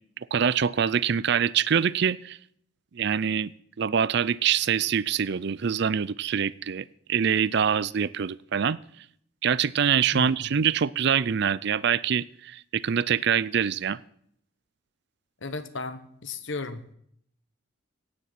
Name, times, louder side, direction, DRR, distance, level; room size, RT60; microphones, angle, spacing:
voice 1, 0.3-2.4 2.9-3.5 3.8-8.8 9.4-14.0, right 7 dB, 55° right, 20 dB, 0.4 m, -25 dB
voice 2, 10.1-10.5 15.4-16.8, left 3 dB, 60° left, 11 dB, 1.2 m, -35 dB
16.0 x 9.8 x 5.9 m, 0.67 s
head